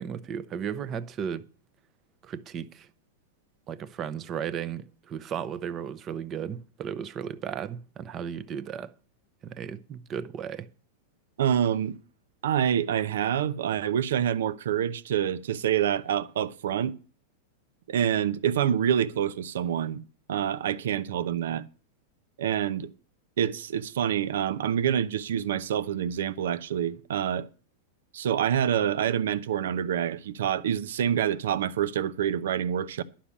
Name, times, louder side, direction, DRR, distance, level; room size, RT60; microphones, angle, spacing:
voice 1, 0.0-1.5 2.2-2.9 3.7-8.9 9.4-10.7, right 8 dB, 25° right, 0.7 m, -35 dB
voice 2, 11.4-12.0 12.4-16.9 17.9-20.0 20.3-21.6 22.4-22.9 23.4-27.5 28.1-33.0, right 9 dB, 85° right, 0.8 m, -27 dB
11.5 x 5.7 x 8.5 m
supercardioid pair, 155°, 0 cm